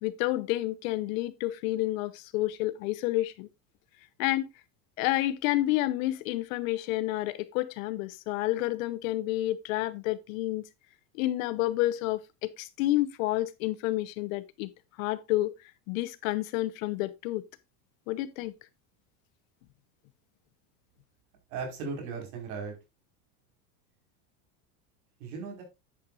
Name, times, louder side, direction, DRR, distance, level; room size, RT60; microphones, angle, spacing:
voice 1, 0.0-3.5 4.2-4.5 5.0-10.6 11.1-14.7 15.0-15.5 15.9-17.4 18.1-18.5, left 16 dB, 65° left, 1.0 m, -29 dB
voice 2, 21.5-22.7 25.2-25.6, right 5 dB, 70° right, 5.1 m, -36 dB
10.0 x 8.7 x 2.5 m
cardioid pair, 180°, 43 cm